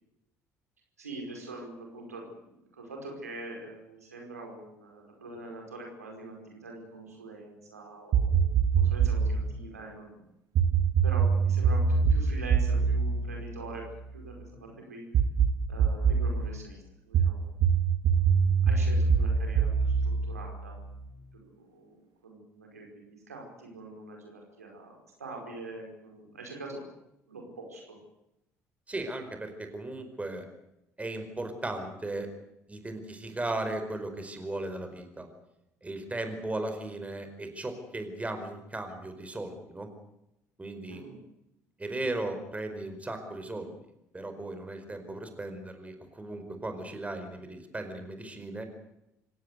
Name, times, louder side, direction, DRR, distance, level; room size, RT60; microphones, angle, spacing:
voice 1, 1.0-10.2 11.0-15.0 15.7-17.4 18.4-20.8 21.3-26.8 27.3-28.0 40.9-41.2, right 2 dB, 90° right, 1 dB, 5.1 m, -44 dB
sound 1, 8.1-9.4 10.6-14.3 15.1-16.4 17.1-21.1, right 6 dB, 50° right, 2.2 m, -24 dB
voice 2, 28.9-30.4 31.0-32.3 32.7-35.3 35.8-39.9 40.6-41.0 41.8-43.7 44.1-48.6, right 2 dB, 15° right, 7 dB, 4.8 m, -36 dB
26.0 x 16.5 x 8.2 m, 0.86 s
figure-of-eight pair, 55°, 8 cm